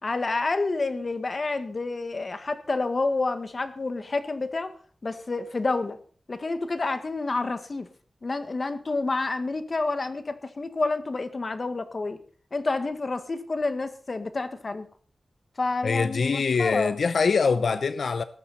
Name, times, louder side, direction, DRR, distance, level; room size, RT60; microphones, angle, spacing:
voice 1, 0.0-4.7 5.0-6.0 6.3-7.9 8.2-12.2 12.5-14.9 15.6-17.0, left 3 dB, 45° left, 1.8 m, -29 dB
voice 2, 15.8-18.2, left 5 dB, 85° left, 0.8 m, -24 dB
19.0 x 13.5 x 4.3 m
wide cardioid pair, 110°, 0 cm